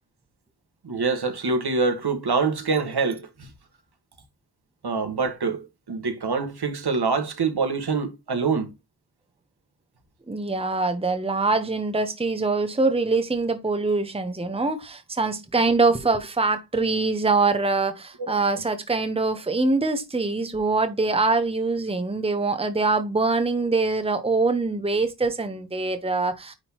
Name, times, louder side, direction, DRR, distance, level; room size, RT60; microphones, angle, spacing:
voice 1, 0.8-3.5 4.8-8.7 18.2-18.3, right 4 dB, 65° right, 1.8 m, -25 dB
voice 2, 10.3-26.5, right 3 dB, 15° right, 1.0 m, -24 dB
9.8 x 3.9 x 3.0 m
wide cardioid pair, 90°, 41 cm